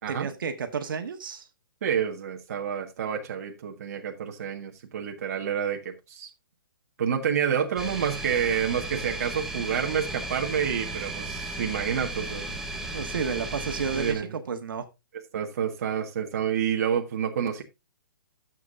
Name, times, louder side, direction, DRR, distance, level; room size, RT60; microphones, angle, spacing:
voice 1, 0.1-1.5 12.9-14.9, right 6 dB, 70° right, 7 dB, 1.6 m, -31 dB
voice 2, 1.8-6.3 7.0-12.6 13.9-14.2 15.3-17.6, right 8 dB, 45° right, 2 dB, 1.5 m, -28 dB
sound 1, 7.8-14.1, right 2 dB, 5° right, 0.8 m, -35 dB
13.0 x 7.5 x 2.6 m, 0.24 s
hypercardioid pair, 175°, 12 cm